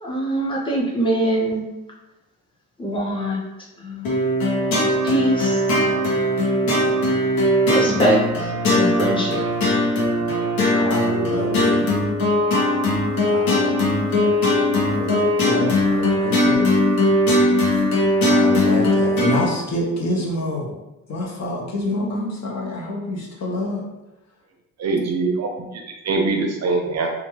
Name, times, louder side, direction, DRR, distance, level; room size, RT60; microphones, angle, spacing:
voice 1, 0.0-1.7 2.8-3.4 3.8-4.2 5.0-5.6 7.7-9.4, right 1 dB, 15° left, -4 dB, 0.7 m, -23 dB
sound 1, 4.0-19.5, left 1 dB, 80° left, 0.8 m, -19 dB
voice 2, 10.7-11.8 13.2-13.7 14.2-14.3 14.9-16.7 18.3-20.7 21.1-23.8, left 1 dB, 50° left, -2 dB, 0.7 m, -27 dB
voice 3, 24.8-27.1, right 3 dB, 50° right, 3 dB, 0.4 m, -23 dB
2.3 x 2.1 x 3.0 m, 1.0 s
cardioid pair, 100°, 34 cm